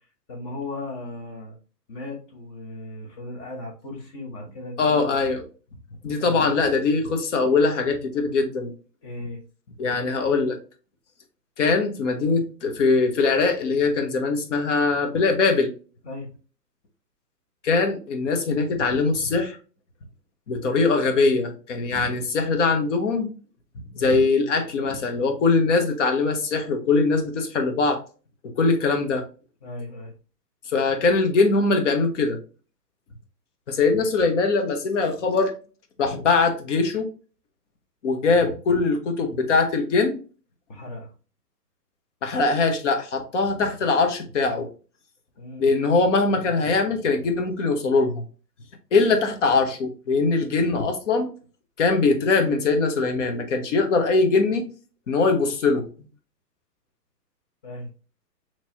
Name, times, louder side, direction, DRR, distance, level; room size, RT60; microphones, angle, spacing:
voice 1, 0.3-1.6 1.9-5.1 6.2-6.4 9.0-9.4 16.0-16.3 29.6-30.1 40.7-41.1 45.4-45.7 57.6-57.9, left 2 dB, 20° left, 1 dB, 0.8 m, -36 dB
voice 2, 4.8-5.4 6.0-8.7 9.8-10.6 11.6-15.7 17.6-19.6 20.5-23.3 23.9-28.0 28.4-29.2 30.7-32.4 33.7-35.5 36.0-37.1 38.0-40.2 42.2-44.7 45.6-48.2 48.9-51.3 51.8-54.7 55.1-55.9, left 4 dB, 45° left, 5 dB, 1.0 m, -22 dB
4.2 x 3.1 x 2.8 m, 0.36 s
hypercardioid pair, 145°, 49 cm